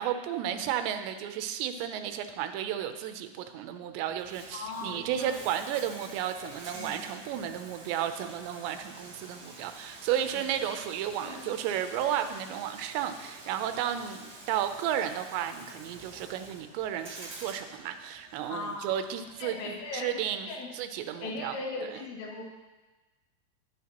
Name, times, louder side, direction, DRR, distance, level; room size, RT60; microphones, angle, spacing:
voice 1, 0.0-22.0, right 10 dB, 85° right, 8 dB, 3.0 m, -33 dB
Bathtub (filling or washing), 4.1-20.0, right 2 dB, 65° right, 1.0 m, -48 dB
voice 2, 4.5-5.4 6.8-7.0 10.3-10.4 11.2-11.5 18.5-18.9 19.4-20.7 21.2-22.4, left 3 dB, 90° left, -1 dB, 4.0 m, -38 dB
21.5 x 7.8 x 3.0 m, 1.2 s
omnidirectional pair, 5.0 m